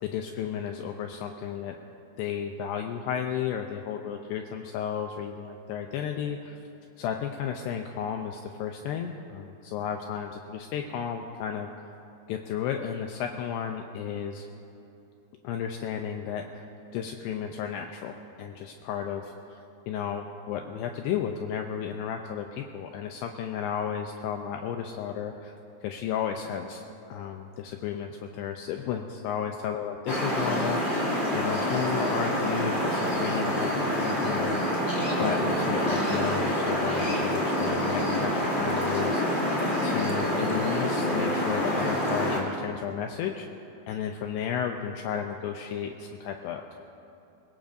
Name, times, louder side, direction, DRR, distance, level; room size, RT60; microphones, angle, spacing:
voice 1, 0.0-1.8 2.2-6.6 7.0-11.7 12.3-14.5 15.4-16.6 16.9-19.6 19.9-25.5 25.8-34.9 35.2-39.5 39.8-46.7, left 8 dB, 85° left, 4 dB, 2.5 m, -33 dB
sound 1, 30.1-42.4, equal, 20° left, 1.9 m, -27 dB
23.0 x 20.5 x 2.6 m, 2.8 s
omnidirectional pair, 5.4 m